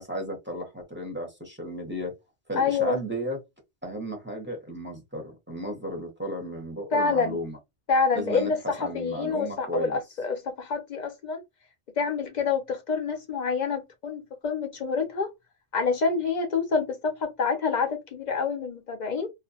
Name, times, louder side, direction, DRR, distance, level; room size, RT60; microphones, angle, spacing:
voice 1, 0.0-2.1 2.5-3.4 3.8-7.6 8.1-8.5 8.8-10.0, equal, 10° right, 0.6 m, -34 dB
voice 2, 2.5-3.0 6.9-7.4 7.9-11.4 12.0-15.3 15.7-19.3, left 5 dB, 60° left, 0.5 m, -27 dB
2.4 x 2.1 x 2.6 m
omnidirectional pair, 1.2 m